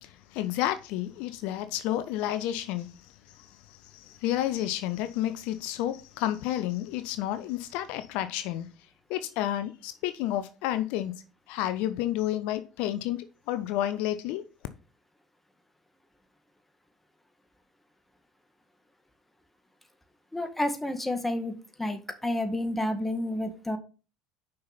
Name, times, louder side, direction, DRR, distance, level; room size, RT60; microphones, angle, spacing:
voice 1, 0.0-8.7 9.1-14.4, left 13 dB, 65° left, 0.7 m, -31 dB
voice 2, 20.3-21.5 21.8-23.8, left 1 dB, 5° left, 1.8 m, -30 dB
6.5 x 5.6 x 5.7 m
hypercardioid pair, 75°, 2 cm